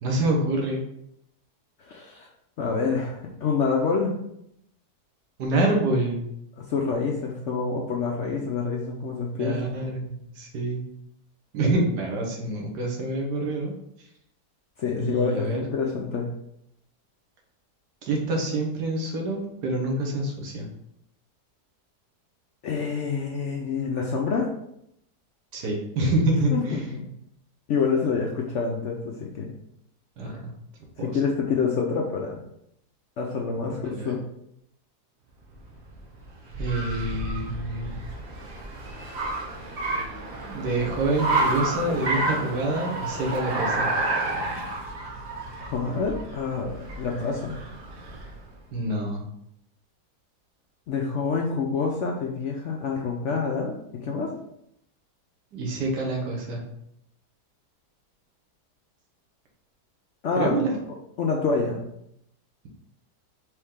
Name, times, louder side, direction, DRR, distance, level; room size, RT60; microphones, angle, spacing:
voice 1, 0.0-0.8 5.4-6.2 9.3-10.8 11.5-13.7 15.0-15.6 18.0-20.7 25.5-26.9 30.2-30.5 31.0-31.2 33.8-34.2 36.6-38.0 40.5-43.9 48.7-49.2 55.5-56.6 60.4-60.7, right 2 dB, 80° right, 0 dB, 1.6 m, -26 dB
voice 2, 1.8-2.3 2.6-4.2 6.6-9.6 14.8-16.3 22.6-24.5 26.5-27.1 27.7-29.5 30.2-30.4 31.0-32.4 33.2-34.2 45.6-47.6 50.9-54.4 60.2-60.6 61.2-61.8, left 5 dB, 65° left, 0 dB, 0.7 m, -27 dB
Car, 35.5-48.4, right 2 dB, 50° right, 0.9 m, -30 dB
4.5 x 3.1 x 3.5 m, 0.75 s
omnidirectional pair, 1.7 m